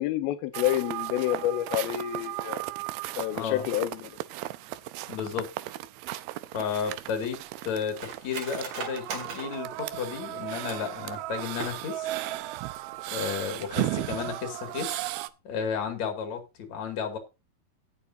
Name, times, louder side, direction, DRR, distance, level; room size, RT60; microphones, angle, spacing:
voice 1, 0.0-2.6 3.2-4.1, left 13 dB, 85° left, 2.6 m, -28 dB
sound 1, 0.5-15.3, right 16 dB, 90° right, 2.6 m, -35 dB
voice 2, 3.3-3.7 5.1-5.5 6.5-7.4 7.6-12.1 13.1-15.0 15.5-17.2, left 6 dB, 50° left, 3.5 m, -33 dB
Cutlery silverware, 6.5-11.0 11.5-12.2 12.5-12.6 12.9-13.3 13.6-13.8, right 5 dB, 55° right, 3.1 m, -41 dB
18.0 x 6.8 x 2.7 m
omnidirectional pair, 4.3 m